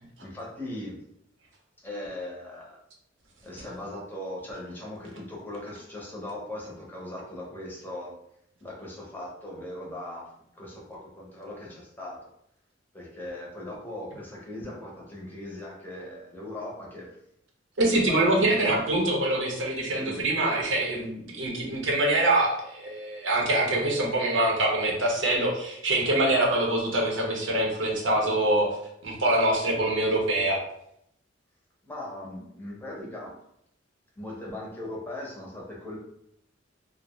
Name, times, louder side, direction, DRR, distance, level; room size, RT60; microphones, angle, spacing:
voice 1, 0.2-1.0 1.8-2.8 3.4-8.2 8.6-12.3 12.9-17.1 17.8-18.8 19.9-20.2 31.8-33.4 34.2-36.0, left 1 dB, 10° left, -3 dB, 0.6 m, -39 dB
voice 2, 17.8-28.8 29.0-30.6, right 1 dB, 75° right, -1 dB, 0.7 m, -24 dB
2.5 x 2.1 x 3.0 m, 0.75 s
head